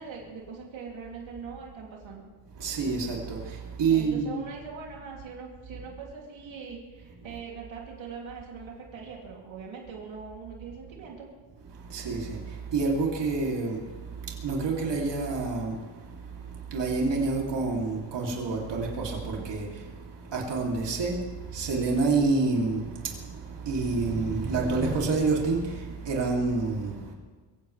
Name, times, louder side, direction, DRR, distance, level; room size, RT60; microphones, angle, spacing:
voice 1, 0.0-2.3 3.9-11.3, right 5 dB, 85° right, 2.9 m, -42 dB
voice 2, 2.5-4.4 11.7-27.1, right 4 dB, 65° right, 2.9 m, -28 dB
22.5 x 16.0 x 3.3 m
cardioid pair, 130°, 46 cm